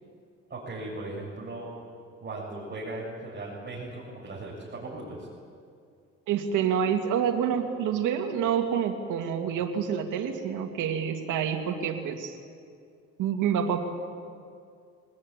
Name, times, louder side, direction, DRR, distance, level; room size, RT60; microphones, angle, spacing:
voice 1, 0.5-1.7 2.2-5.3, right 2 dB, 35° right, -5 dB, 7.6 m, -38 dB
voice 2, 6.3-12.4 13.2-13.8, right 8 dB, 90° right, 4 dB, 2.5 m, -27 dB
24.0 x 19.5 x 9.8 m, 2.3 s
cardioid pair, 90°, 30 cm